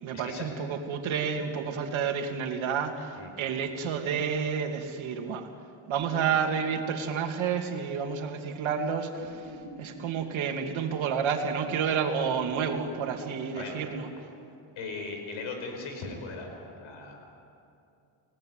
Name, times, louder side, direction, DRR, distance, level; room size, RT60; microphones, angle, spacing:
voice 1, 0.0-5.5 5.9-14.1, right 6 dB, 80° right, 4 dB, 2.8 m, -30 dB
sound 1, 5.9-7.6 9.2-11.3 12.2-14.4, right 1 dB, 50° right, 3.1 m, -47 dB
voice 2, 14.8-17.3, left 3 dB, 85° left, 3 dB, 5.3 m, -38 dB
29.5 x 18.0 x 9.4 m, 2.6 s
cardioid pair, 120°, 47 cm